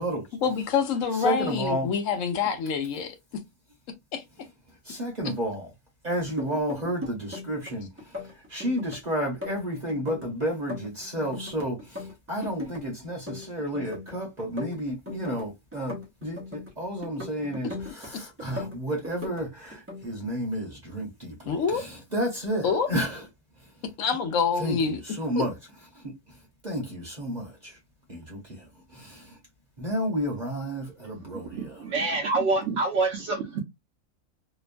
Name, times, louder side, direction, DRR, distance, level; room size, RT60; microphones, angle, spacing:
voice 1, 0.4-3.2 4.1-4.2 21.5-21.9 22.6-22.9 24.0-25.0 25.4-25.5, left 6 dB, 80° left, 1.0 m, -26 dB
voice 2, 1.2-1.9 4.8-5.7 6.0-23.2 23.6-23.7 24.6-25.5 25.9-27.8 28.1-29.4 29.8-31.8, equal, 35° right, 0.9 m, -32 dB
sound 1, 6.3-7.7 8.0-9.0 9.2-11.5 11.8-12.8 13.1-14.1 14.4-16.7 17.0-18.1 18.4-19.4 19.7-20.0, left 2 dB, 15° right, 0.5 m, -38 dB
voice 3, 31.2-33.6, right 3 dB, 65° right, 0.9 m, -27 dB
3.0 x 2.2 x 2.4 m
omnidirectional pair, 1.4 m